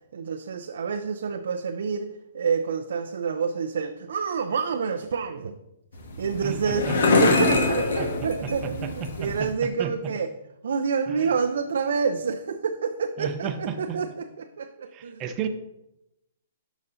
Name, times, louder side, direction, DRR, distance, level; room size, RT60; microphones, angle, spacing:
voice 1, 0.1-2.1 2.3-5.5 6.2-7.1 7.4-10.3 10.6-15.2, right 5 dB, 70° right, 6 dB, 0.5 m, -28 dB
sound 1, 5.9-9.5, left 3 dB, 70° left, 1.3 m, -24 dB
voice 2, 6.4-7.0 7.3-7.4 8.0-8.1 8.4-9.5 9.8-9.9 11.1-11.3 13.2-14.0 14.9-15.5, right 8 dB, 30° right, 6 dB, 0.7 m, -33 dB
12.0 x 4.1 x 2.7 m, 0.87 s
hypercardioid pair, 120°, 0 cm